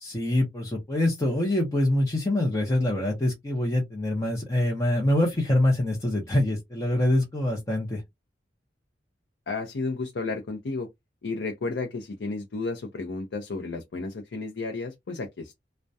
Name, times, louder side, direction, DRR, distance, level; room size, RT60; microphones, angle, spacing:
voice 1, 0.0-8.0, left 1 dB, 20° left, 0.6 m, -25 dB
voice 2, 9.5-10.9 11.2-15.6, left 3 dB, 75° left, 0.5 m, -32 dB
2.2 x 2.1 x 2.6 m
head